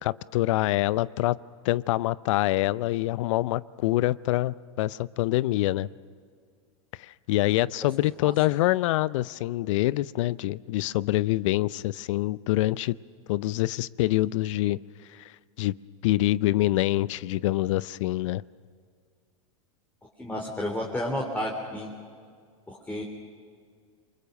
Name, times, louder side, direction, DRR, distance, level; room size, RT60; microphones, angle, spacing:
voice 1, 0.0-1.4 1.6-5.9 7.0-13.0 13.3-14.8 15.1-15.3 15.6-15.7 16.0-18.4, left 16 dB, 60° left, 20 dB, 0.6 m, -25 dB
voice 2, 20.2-21.9 22.7-23.0, left 1 dB, 10° left, -1 dB, 3.5 m, -31 dB
28.5 x 23.5 x 6.5 m, 2.1 s
hypercardioid pair, 95°, 18 cm